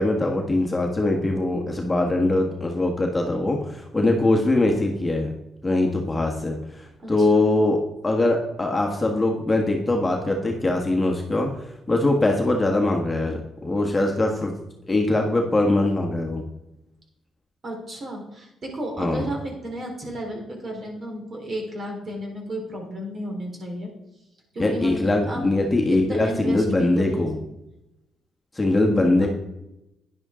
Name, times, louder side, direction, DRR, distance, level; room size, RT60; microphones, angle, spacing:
voice 1, 0.0-5.3 5.6-11.5 11.9-14.5 14.9-16.4 19.0-19.2 24.6-27.4 28.5-29.3, left 2 dB, 15° left, 1 dB, 1.5 m, -22 dB
voice 2, 7.0-7.4 17.6-23.9 24.5-25.5 25.9-27.4 28.9-29.3, right 1 dB, 40° right, 1 dB, 3.9 m, -33 dB
10.5 x 10.0 x 3.8 m, 0.88 s
cardioid pair, 90°, 0 cm